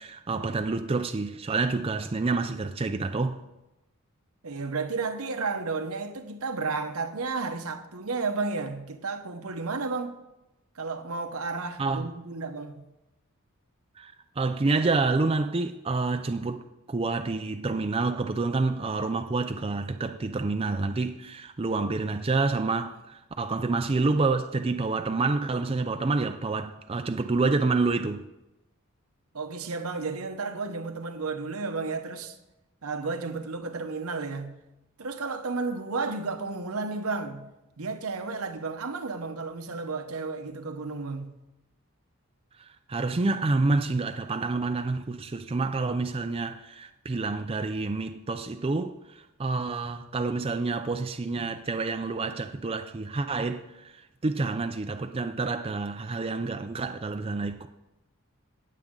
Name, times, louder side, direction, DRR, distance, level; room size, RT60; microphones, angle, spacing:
voice 1, 0.0-3.4 11.8-12.1 14.0-28.2 42.6-57.7, right 3 dB, 25° right, 0.4 m, -28 dB
voice 2, 4.4-10.1 10.7-12.8 29.3-32.4 32.8-34.5 35.0-37.5 37.8-41.3, right 4 dB, 80° right, 1.1 m, -32 dB
18.5 x 7.5 x 3.8 m
head